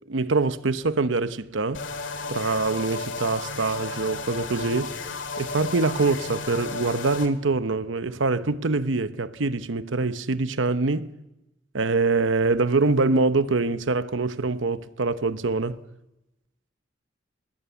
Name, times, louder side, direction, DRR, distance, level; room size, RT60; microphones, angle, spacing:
voice 1, 0.1-1.8 2.3-4.9 5.4-11.1 11.7-15.8, right 3 dB, 75° right, 0.9 m, -24 dB
sound 1, 1.7-7.3, left 4 dB, 70° left, 2.1 m, -33 dB
sound 2, 4.0-4.2 4.6-5.7 6.0-6.7 6.9-8.8, equal, 15° right, 3.1 m, -53 dB
25.0 x 20.5 x 7.0 m
head